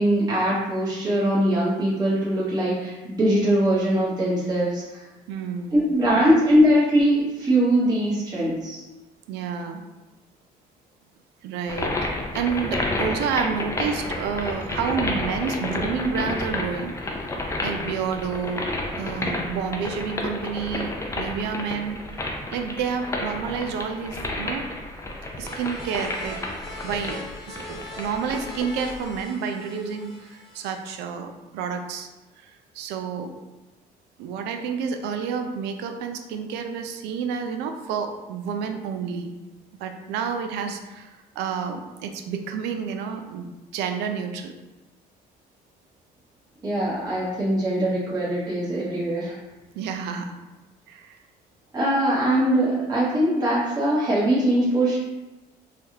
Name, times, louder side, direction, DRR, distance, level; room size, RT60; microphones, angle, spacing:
voice 1, 0.0-5.0 5.7-8.8 46.6-49.4 51.7-55.0, right 1 dB, 25° right, -8 dB, 1.0 m, -21 dB
voice 2, 5.3-5.8 6.2-6.4 9.3-9.8 11.4-17.2 17.6-18.7 19.0-22.0 22.5-24.6 25.4-26.4 26.8-32.1 32.4-33.3 34.2-39.3 39.8-43.5 43.7-44.5 49.7-50.3 50.9-51.2, right 6 dB, 90° right, 5 dB, 0.4 m, -29 dB
sound 1, 11.7-29.2, left 2 dB, 15° left, 0.4 m, -31 dB
sound 2, 25.4-30.8, left 1 dB, 35° left, 0.8 m, -41 dB
3.3 x 2.3 x 2.7 m, 1.1 s
cardioid pair, 110°, 17 cm